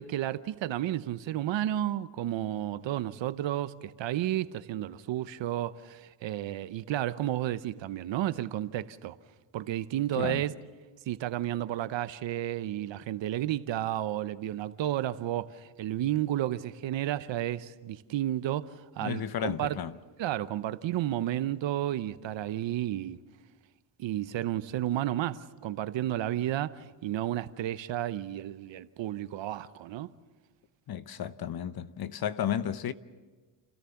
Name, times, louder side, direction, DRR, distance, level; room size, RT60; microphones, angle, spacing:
voice 1, 0.0-9.2 9.5-10.5 11.1-19.8 20.2-23.2 24.0-30.1, right 13 dB, 65° right, 0.9 m, -32 dB
voice 2, 19.0-20.0 30.9-32.9, left 9 dB, 50° left, 0.9 m, -33 dB
30.0 x 14.0 x 7.1 m
cardioid pair, 95°, 48 cm